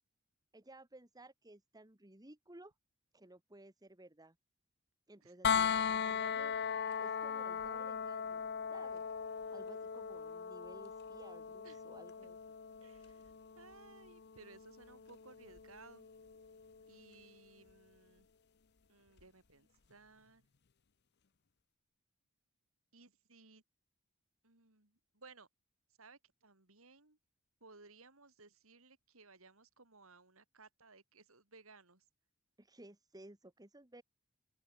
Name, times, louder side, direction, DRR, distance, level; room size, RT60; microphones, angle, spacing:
voice 1, 0.5-2.7 3.1-4.4 5.1-6.6 7.0-9.0 9.5-12.4 32.6-34.0, right 1 dB, 20° right, 1.9 m, -57 dB
sound 1, 5.4-17.3 19.2-19.3, left 7 dB, 50° left, 0.8 m, -39 dB
voice 2, 6.0-6.4 11.6-11.8 12.2-12.3 12.8-16.1 16.9-18.3 18.9-20.4 22.9-23.6 24.4-25.5 26.0-27.2 27.6-32.0, right 3 dB, 70° right, 4.0 m, -60 dB
open air
head